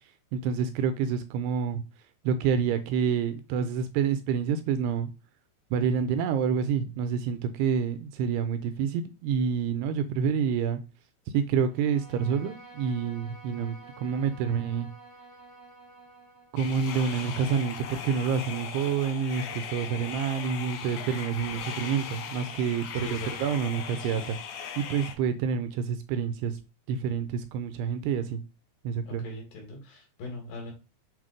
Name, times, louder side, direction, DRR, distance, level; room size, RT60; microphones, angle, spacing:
voice 1, 0.3-1.8 2.2-5.1 5.7-10.8 11.3-14.9 16.5-24.4 24.8-26.6 26.9-28.4 28.8-29.2, right 7 dB, 80° right, 2.6 m, -28 dB
Bowed string instrument, 11.7-16.6, right 2 dB, 55° right, 0.7 m, -50 dB
sound 1, 16.6-25.2, left 8 dB, 85° left, 3.4 m, -38 dB
voice 2, 22.9-23.5 24.0-24.2 29.1-30.7, left 2 dB, 60° left, 3.7 m, -40 dB
7.5 x 3.5 x 5.1 m
omnidirectional pair, 5.0 m